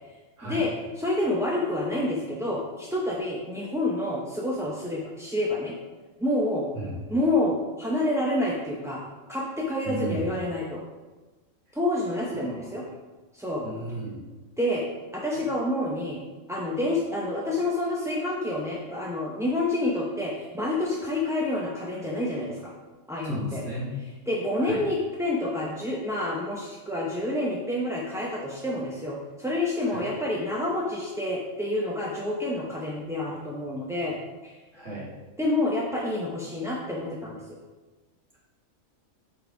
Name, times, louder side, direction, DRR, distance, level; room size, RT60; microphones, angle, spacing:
voice 1, 1.0-5.8 6.2-6.7 7.1-9.0 9.3-10.8 11.7-12.8 13.3-13.7 14.6-14.9 15.1-16.2 16.5-22.7 23.1-23.6 24.3-34.2 34.4-34.6 35.4-37.6, left 1 dB, 5° right, -4 dB, 0.4 m, -28 dB
voice 2, 9.8-10.2 12.3-12.9 13.6-14.2 23.2-23.9 24.6-24.8 29.8-30.1 34.7-35.1, right 1 dB, 70° right, -6 dB, 2.3 m, -35 dB
5.1 x 4.1 x 5.7 m, 1.2 s
omnidirectional pair, 1.3 m